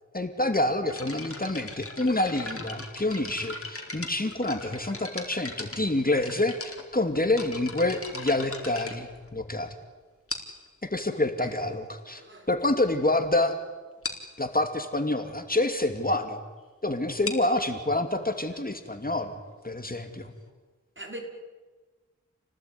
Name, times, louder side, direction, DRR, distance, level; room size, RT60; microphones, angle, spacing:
voice 1, 0.1-9.7 10.8-12.2 12.5-13.5 14.4-16.4 16.8-19.4 19.6-20.3, left 2 dB, 30° left, 7 dB, 2.7 m, -27 dB
sound 1, 0.9-9.7 10.3-10.7 11.5-11.6 12.3-12.4 12.6-12.8 13.2-13.3 13.5-13.6 14.0-14.3 17.0-20.5, left 2 dB, 50° left, 4.4 m, -40 dB
voice 2, 11.4-11.8 12.2-12.5 21.0-21.2, right 1 dB, 40° right, 3 dB, 5.7 m, -41 dB
29.5 x 19.0 x 9.7 m, 1.3 s
wide cardioid pair, 45°, 30 cm